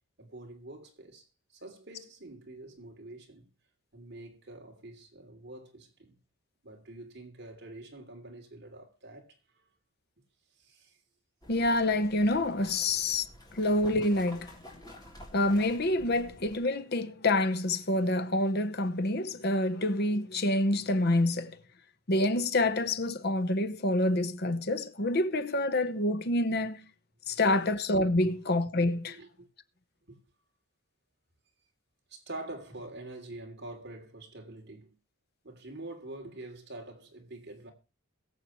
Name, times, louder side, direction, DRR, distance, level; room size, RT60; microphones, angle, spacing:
voice 1, 0.2-1.2 1.6-3.5 3.9-6.1 6.6-9.3 10.6-10.9 27.3-27.4 28.2-28.3 29.1-29.5 30.1-30.2 32.1-34.9 35.4-37.7, right 2 dB, 50° right, 2.9 m, -46 dB
sound 1, 11.4-16.6, left 1 dB, 15° left, 3.2 m, -50 dB
voice 2, 11.5-13.2 13.5-14.5 15.3-21.6 22.1-26.8 27.3-29.2, left 1 dB, 45° left, 0.9 m, -27 dB
22.0 x 7.6 x 3.1 m
head